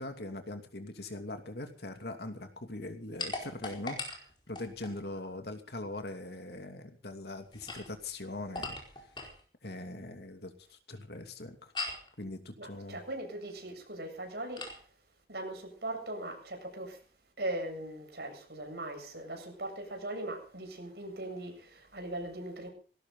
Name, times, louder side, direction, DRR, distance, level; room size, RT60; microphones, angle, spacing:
voice 1, 0.0-8.8 9.6-11.7 12.2-13.0, left 2 dB, 65° left, 2.8 m, -41 dB
sound 1, 3.2-5.0 7.4-9.4 11.7-12.1 14.6-14.8, left 3 dB, 25° left, 4.7 m, -40 dB
voice 2, 12.6-14.8 15.3-17.0 17.4-22.7, right 1 dB, 65° right, 7.6 m, -40 dB
20.5 x 17.5 x 3.9 m
head